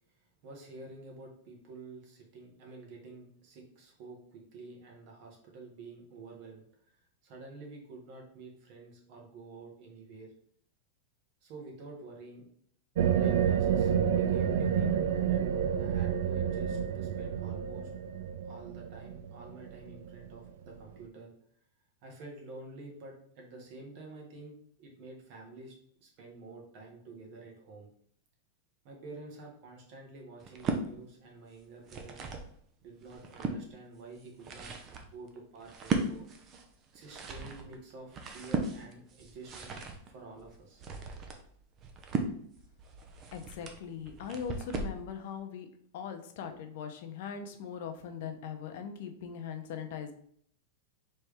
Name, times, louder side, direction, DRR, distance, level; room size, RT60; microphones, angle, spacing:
voice 1, 0.4-6.6 7.2-10.3 11.4-12.5 13.0-15.5 15.8-17.9 18.4-21.3 22.0-25.7 26.0-27.9 28.8-32.2 32.8-34.7 35.0-36.3 36.9-40.8, right 3 dB, 50° right, 0 dB, 1.5 m, -49 dB
sound 1, 13.0-20.2, right 8 dB, 70° right, 0.3 m, -29 dB
sound 2, 30.4-30.9 31.6-32.5 33.0-33.6 34.2-45.0, right 4 dB, 30° right, 0.7 m, -37 dB
voice 2, 43.3-45.7 45.9-50.1, left 7 dB, 60° left, 6 dB, 0.7 m, -40 dB
4.3 x 3.2 x 3.5 m, 0.63 s
supercardioid pair, 145°, 0 cm